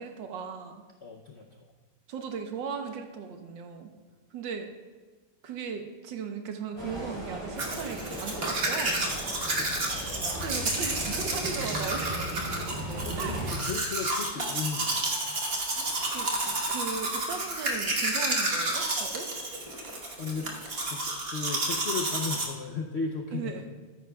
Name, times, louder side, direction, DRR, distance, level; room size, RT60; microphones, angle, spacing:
voice 1, 0.0-0.8 2.1-3.9 4.3-4.7 5.4-9.1 10.3-12.3 13.1-13.4 15.7-19.3 23.3-23.7, right 6 dB, 85° right, 5 dB, 1.6 m, -37 dB
voice 2, 1.0-1.7 9.5-10.0 13.1-13.4 13.7-15.0 20.2-20.5 20.9-23.6, left 5 dB, 70° left, 1 dB, 0.6 m, -36 dB
sound 1, 6.8-13.5, right 1 dB, 15° right, 3.4 m, -37 dB
Domestic sounds home sounds, 7.6-22.5, right 2 dB, 35° right, 1.3 m, -31 dB
13.5 x 10.5 x 2.3 m, 1.3 s
omnidirectional pair, 2.0 m